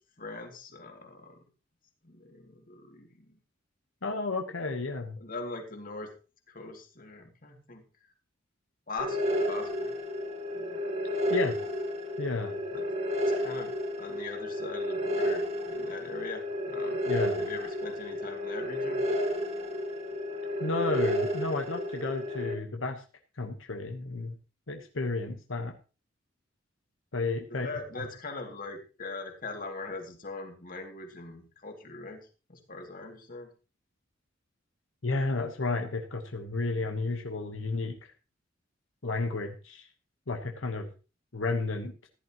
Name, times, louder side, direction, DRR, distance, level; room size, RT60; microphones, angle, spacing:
voice 1, 0.2-1.4 2.0-3.4 5.2-6.1 6.5-7.8 8.9-9.9 10.5-10.8 12.7-12.8 13.4-17.0 17.4-19.0 27.5-33.5, left 3 dB, 45° left, 3 dB, 2.4 m, -41 dB
voice 2, 4.0-5.2 11.3-11.6 12.2-12.6 17.0-17.5 20.6-23.0 23.4-24.4 24.7-25.7 27.1-27.7 27.9-28.0 35.0-38.1 39.0-39.9 40.3-40.9 41.3-42.1, left 3 dB, 80° left, 4 dB, 1.2 m, -32 dB
sound 1, 9.0-22.5, equal, 35° right, 1.9 m, -31 dB
15.0 x 11.0 x 3.0 m, 0.33 s
head